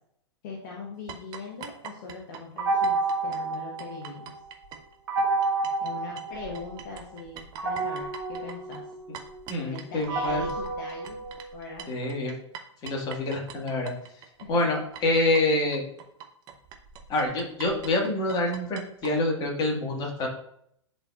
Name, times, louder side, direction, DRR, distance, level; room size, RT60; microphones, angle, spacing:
voice 1, 0.4-3.0 3.2-4.3 5.8-8.9 9.6-11.2 11.5-11.9 14.4-14.5, left 4 dB, 40° left, -2 dB, 1.2 m, -41 dB
sound 1, 1.1-5.9 6.2-19.1, right 7 dB, 25° right, 0.7 m, -44 dB
sound 2, 2.6-4.4 5.1-6.9 7.6-11.8, right 3 dB, 55° right, 1.3 m, -30 dB
voice 2, 9.5-10.4 11.9-12.3 12.8-14.2 14.5-15.8 17.1-20.3, left 2 dB, 25° left, 0 dB, 1.7 m, -27 dB
10.5 x 4.1 x 2.4 m, 0.70 s
figure-of-eight pair, 105°, 15 cm